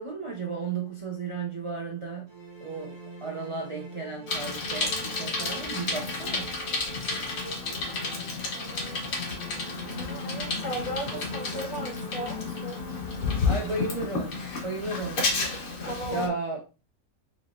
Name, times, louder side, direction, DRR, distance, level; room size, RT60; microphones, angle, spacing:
voice 1, 0.0-2.3 2.6-6.5 13.4-14.4 14.6-15.2 16.1-16.6, right 4 dB, 40° right, 0.4 m, -34 dB
sound 1, 2.3-8.7 9.1-14.1, right 2 dB, 20° right, 1.1 m, -44 dB
Bicycle, 4.3-16.3, left 4 dB, 70° left, 1.6 m, -31 dB
voice 2, 7.1-8.2 8.5-9.1 10.0-12.8 15.8-16.3, right 1 dB, 55° left, 2.4 m, -37 dB
4.5 x 3.8 x 2.4 m
omnidirectional pair, 1.5 m